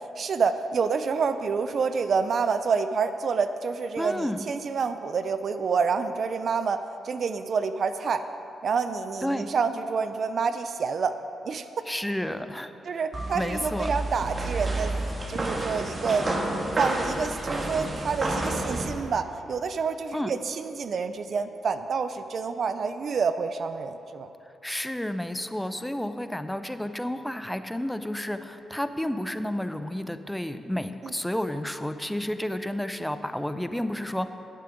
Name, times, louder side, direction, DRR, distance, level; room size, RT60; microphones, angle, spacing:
voice 1, 0.2-8.2 8.6-11.2 11.4-11.6 12.9-14.9 15.3-16.3 16.8-24.3 31.0-31.1, right 5 dB, 60° right, 10 dB, 0.5 m, -28 dB
voice 2, 4.0-4.5 9.2-9.5 11.9-12.7 13.3-13.9 20.1-20.3 24.6-34.3, left 1 dB, 5° left, 10 dB, 0.6 m, -31 dB
sound 1, 13.1-18.9, right 2 dB, 40° right, 1.6 m, -30 dB
10.5 x 7.6 x 5.2 m, 2.8 s
supercardioid pair, 50°, 0 cm